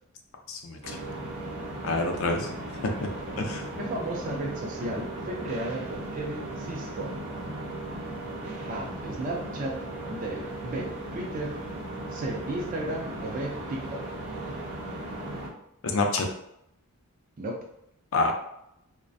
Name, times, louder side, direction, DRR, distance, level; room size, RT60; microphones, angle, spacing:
voice 1, 0.5-1.0 1.8-2.5 2.8-2.9 3.4-3.6 15.9-16.3 18.1-18.3, left 3 dB, 65° left, 3 dB, 0.4 m, -27 dB
sound 1, 0.8-15.5, right 1 dB, 80° right, 0.6 m, -37 dB
voice 2, 3.8-7.2 8.7-9.8 10.1-11.7 12.1-14.0 17.4-17.7, right 1 dB, 40° right, 0 dB, 0.3 m, -34 dB
2.4 x 2.1 x 2.5 m, 0.77 s
head